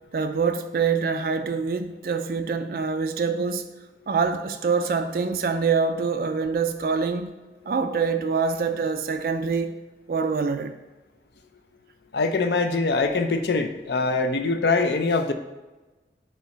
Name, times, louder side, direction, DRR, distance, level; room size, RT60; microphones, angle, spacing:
voice 1, 0.1-3.7 4.1-7.3 7.7-9.7 10.1-10.8, right 5 dB, 50° right, 0.3 m, -25 dB
voice 2, 12.1-15.3, left 3 dB, 65° left, 0.5 m, -23 dB
4.5 x 4.1 x 5.7 m
head